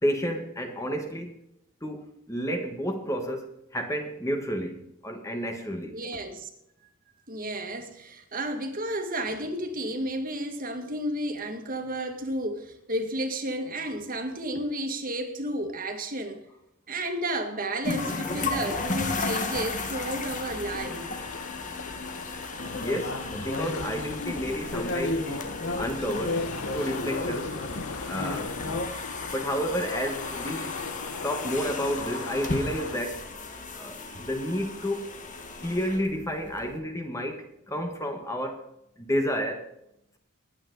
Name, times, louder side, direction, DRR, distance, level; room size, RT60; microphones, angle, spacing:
voice 1, 0.0-1.3 1.8-5.9 22.7-26.4 26.7-27.5 28.1-28.5 29.3-30.7 31.2-33.2 33.8-35.1 35.6-38.7 39.0-39.7, equal, 15° left, 4 dB, 1.4 m, -31 dB
voice 2, 5.8-6.5 7.3-16.4 16.9-21.1, right 1 dB, 40° right, 5 dB, 2.0 m, -32 dB
sound 1, 17.8-36.7, left 3 dB, 35° left, 1.5 m, -36 dB
sound 2, 18.6-33.0, left 5 dB, 80° left, 0.9 m, -40 dB
sound 3, 22.6-28.9, left 2 dB, 55° left, 1.1 m, -33 dB
21.0 x 8.9 x 4.0 m, 0.80 s
head